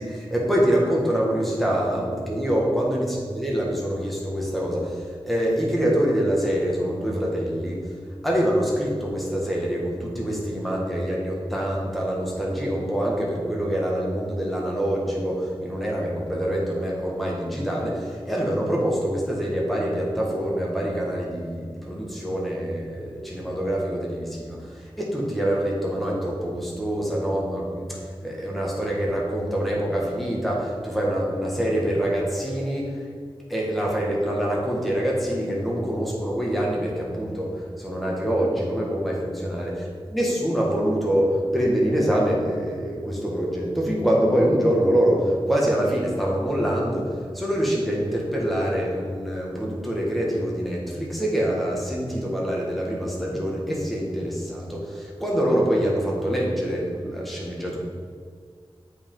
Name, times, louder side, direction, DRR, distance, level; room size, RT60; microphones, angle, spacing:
voice 1, 0.0-3.1 3.3-7.8 8.2-32.9 33.5-39.7 40.1-57.8, equal, ahead, -4 dB, 1.6 m, -25 dB
8.2 x 5.0 x 3.8 m, 2.1 s
wide cardioid pair, 95°, 10 cm